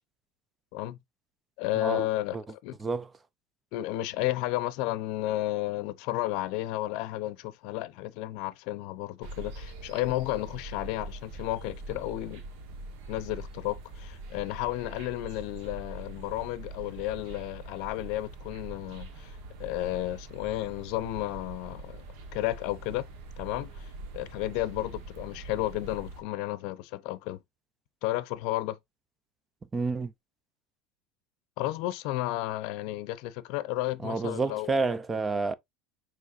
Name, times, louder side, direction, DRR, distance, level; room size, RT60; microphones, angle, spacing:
voice 1, 1.6-2.4 2.6-2.8 3.7-12.4 13.1-22.0 22.3-23.1 23.4-23.9 24.1-27.4 28.0-28.8 31.6-34.8, left 16 dB, 65° left, 0.6 m, -32 dB
sound 1, 9.2-26.2, right 2 dB, 65° right, 1.2 m, -43 dB
voice 2, 29.7-30.1 34.0-35.5, right 4 dB, 20° right, 0.4 m, -29 dB
6.4 x 3.1 x 2.5 m
supercardioid pair, 125°, 0 cm